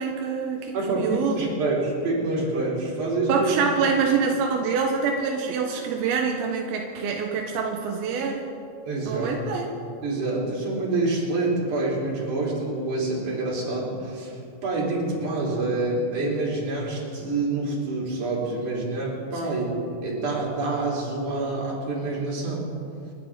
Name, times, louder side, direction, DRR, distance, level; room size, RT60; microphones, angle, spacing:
voice 1, 0.0-1.5 3.3-8.5 9.1-9.7 19.4-19.6, right 5 dB, 90° right, 2 dB, 2.8 m, -26 dB
voice 2, 0.7-3.8 8.8-9.3 10.0-22.6, right 2 dB, 55° right, -5 dB, 4.7 m, -27 dB
29.5 x 10.0 x 3.7 m, 2.6 s
omnidirectional pair, 4.3 m